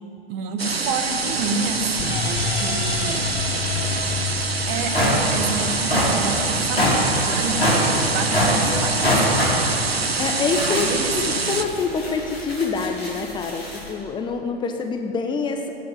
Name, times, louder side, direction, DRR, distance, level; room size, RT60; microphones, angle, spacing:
voice 1, 0.3-3.3 4.7-9.8 10.7-11.1, right 5 dB, 40° right, 7 dB, 1.6 m, -29 dB
sound 1, 0.6-11.6, right 4 dB, 80° right, 1.1 m, -25 dB
sound 2, 1.3-9.4, left 7 dB, 50° left, 1.5 m, -32 dB
sound 3, 4.2-4.3 4.7-13.9, equal, 85° left, 4.4 m, -24 dB
voice 2, 10.2-15.7, left 4 dB, 15° left, 5 dB, 1.1 m, -26 dB
17.5 x 8.3 x 9.7 m, 2.8 s
figure-of-eight pair, 95°, 30 cm